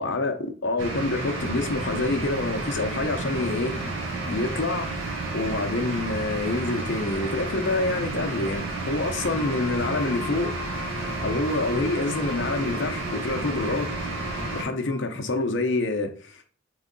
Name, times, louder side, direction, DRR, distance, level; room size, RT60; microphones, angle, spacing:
voice 1, 0.0-3.9 4.3-4.9 5.3-10.5 11.2-13.9 14.5-16.4, left 2 dB, 60° left, 0.6 m, -27 dB
sound 1, 0.8-14.6, right 3 dB, 70° right, 1.2 m, -31 dB
Wind instrument woodwind instrument, 9.3-15.1, left 6 dB, 10° left, 0.5 m, -40 dB
3.6 x 3.1 x 3.8 m
head